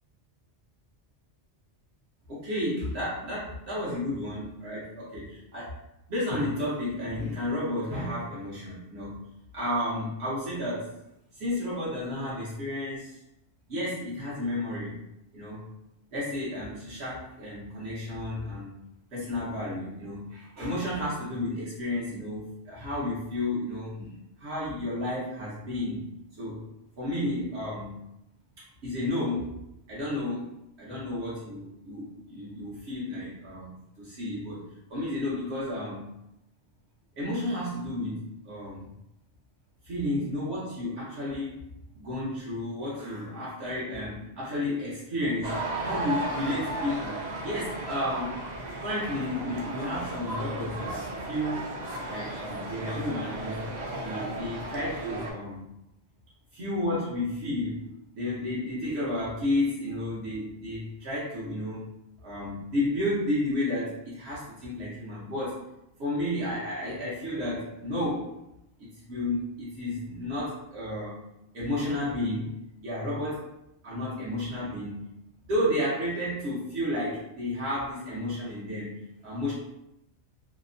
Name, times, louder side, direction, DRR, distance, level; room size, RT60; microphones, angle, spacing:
voice 1, 2.3-5.8 6.1-9.2 9.5-10.9 11.3-13.2 13.7-15.0 15.3-15.6 16.1-18.7 19.1-24.1 24.4-26.0 26.4-26.6 27.0-28.0 28.6-29.5 29.9-34.6 34.9-36.1 37.2-38.9 39.8-41.6 41.9-48.4 48.8-51.7 52.0-53.7 54.0-55.6 56.5-57.8 58.1-61.9 62.2-65.6 66.0-68.4 68.8-71.2 71.5-72.6 72.8-73.5 73.8-75.1 75.5-79.5, left 1 dB, 70° right, -8 dB, 1.0 m, -32 dB
sound 1, 45.4-55.3, right 1 dB, 50° right, 0.6 m, -35 dB
2.8 x 2.0 x 2.5 m, 0.83 s
omnidirectional pair, 1.2 m